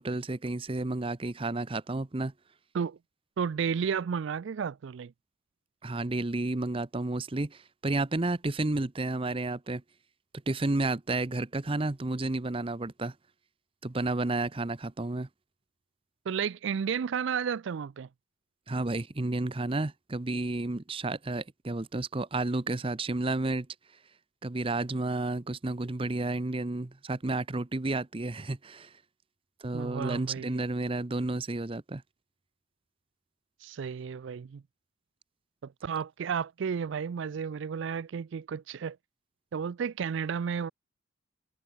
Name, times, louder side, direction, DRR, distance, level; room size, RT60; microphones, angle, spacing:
voice 1, 0.0-2.3 5.8-9.8 10.5-13.1 13.8-15.3 18.7-23.7 24.4-28.9 29.6-32.0, right 2 dB, 25° right, 0.7 m, -31 dB
voice 2, 3.4-5.1 16.3-18.1 29.7-30.6 33.6-34.6 35.6-39.0 39.5-40.7, right 7 dB, 60° right, 0.4 m, -32 dB
head